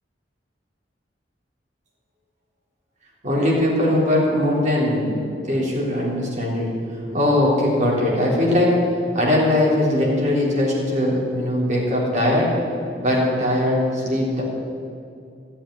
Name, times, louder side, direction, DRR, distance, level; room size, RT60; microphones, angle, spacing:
voice 1, 3.2-6.7 7.1-8.8 9.1-12.5 13.0-14.4, left 1 dB, 40° right, -3 dB, 3.5 m, -20 dB
13.0 x 7.3 x 9.8 m, 2.4 s
head